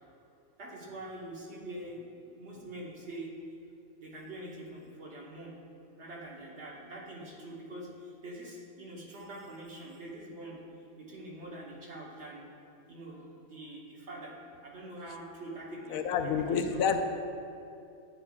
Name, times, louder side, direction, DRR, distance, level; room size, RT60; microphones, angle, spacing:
voice 1, 0.6-3.3 4.0-5.6 5.9-10.6 11.0-12.5 12.9-14.4 14.6-16.8, right 1 dB, 55° right, -3 dB, 1.4 m, -44 dB
voice 2, 15.9-17.0, left 7 dB, 75° left, 6 dB, 1.0 m, -28 dB
10.0 x 8.8 x 2.3 m, 2.6 s
omnidirectional pair, 1.5 m